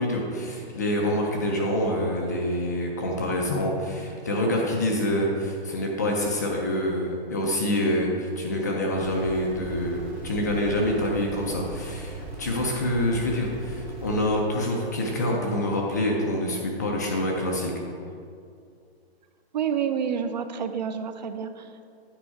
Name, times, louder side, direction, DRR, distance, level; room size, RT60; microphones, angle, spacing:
voice 1, 0.0-17.7, left 1 dB, 20° left, -1 dB, 0.3 m, -26 dB
sound 1, 8.9-14.2, right 2 dB, 25° right, 1.6 m, -39 dB
voice 2, 19.5-21.9, right 7 dB, 45° right, 9 dB, 0.4 m, -29 dB
8.8 x 5.3 x 4.6 m, 2.4 s
hypercardioid pair, 160°, 32 cm